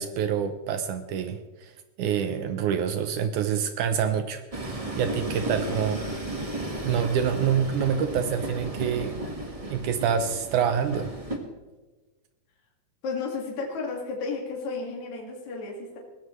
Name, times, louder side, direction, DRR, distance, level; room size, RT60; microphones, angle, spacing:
voice 1, 0.0-1.7 2.0-6.0 6.8-9.1 9.7-11.1, right 8 dB, 75° right, 9 dB, 2.2 m, -27 dB
Train, 4.5-11.4, right 1 dB, 25° right, 0.7 m, -34 dB
voice 2, 5.7-6.5 13.0-16.0, left 4 dB, 60° left, -1 dB, 3.3 m, -34 dB
20.5 x 17.5 x 3.2 m, 1.2 s
omnidirectional pair, 3.8 m